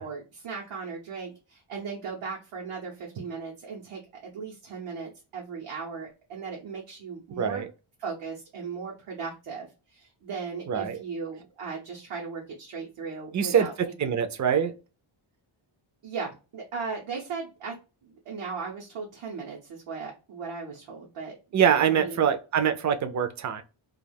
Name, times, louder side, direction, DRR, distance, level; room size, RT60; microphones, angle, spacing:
voice 1, 0.0-7.7 8.0-13.7 14.0-14.1 16.0-17.7 18.0-21.3 21.7-22.2, right 5 dB, 90° right, 0.9 m, -37 dB
voice 2, 7.4-7.7 10.7-11.0 13.3-13.7 14.0-14.7 21.5-23.6, right 8 dB, 40° right, 0.4 m, -24 dB
2.4 x 2.2 x 3.3 m
wide cardioid pair, 120°, 50 cm